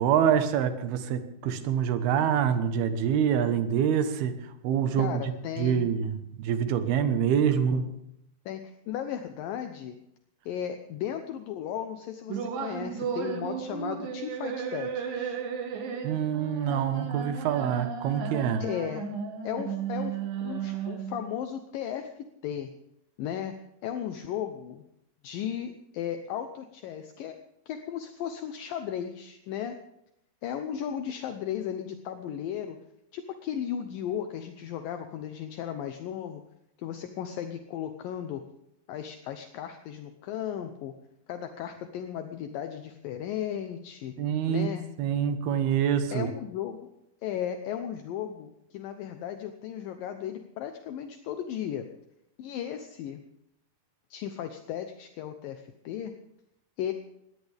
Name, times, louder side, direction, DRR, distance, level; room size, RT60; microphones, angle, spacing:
voice 1, 0.0-4.3 4.6-5.2 5.6-7.9 16.0-18.6 44.2-44.7 45.0-46.3, right 8 dB, 85° right, 9 dB, 3.2 m, -26 dB
voice 2, 5.0-5.9 8.5-10.0 10.5-15.4 18.6-19.1 19.4-22.1 22.4-22.7 23.2-24.8 25.2-27.4 27.7-29.8 30.4-32.8 33.1-36.4 36.8-38.4 38.9-41.0 41.3-44.2 44.5-44.9 46.1-46.9 47.2-51.9 52.4-53.2 54.1-56.1 56.8-56.9, left 9 dB, 75° left, 7 dB, 2.5 m, -35 dB
sound 1, 12.3-21.3, right 7 dB, 65° right, 3.4 m, -34 dB
21.5 x 17.0 x 3.5 m, 0.79 s
omnidirectional pair, 4.4 m